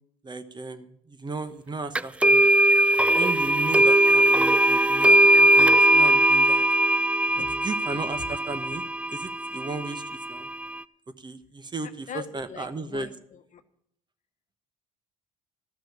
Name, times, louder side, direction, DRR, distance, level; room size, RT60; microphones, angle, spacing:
voice 1, 0.2-2.5 3.1-6.6 7.4-8.8 9.1-10.5 11.2-13.1, right 3 dB, 25° right, 10 dB, 1.1 m, -35 dB
sound 1, 2.0-10.8, right 1 dB, 5° right, 0.4 m, -20 dB
voice 2, 11.8-13.6, left 8 dB, 50° left, 9 dB, 1.2 m, -42 dB
13.0 x 6.2 x 8.7 m, 0.71 s
hypercardioid pair, 65°, 17 cm